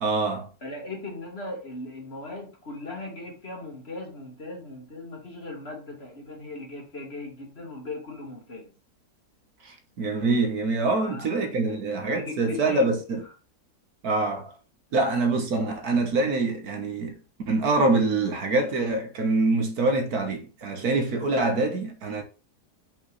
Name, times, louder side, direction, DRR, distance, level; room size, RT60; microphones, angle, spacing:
voice 1, 0.0-0.5 9.6-13.2 14.0-14.5 14.9-17.2 17.5-22.2, right 3 dB, 70° right, 1.7 m, -25 dB
voice 2, 0.6-8.7 11.0-11.8 12.1-12.9, left 2 dB, 40° left, 2.2 m, -38 dB
5.6 x 5.6 x 3.2 m
omnidirectional pair, 1.7 m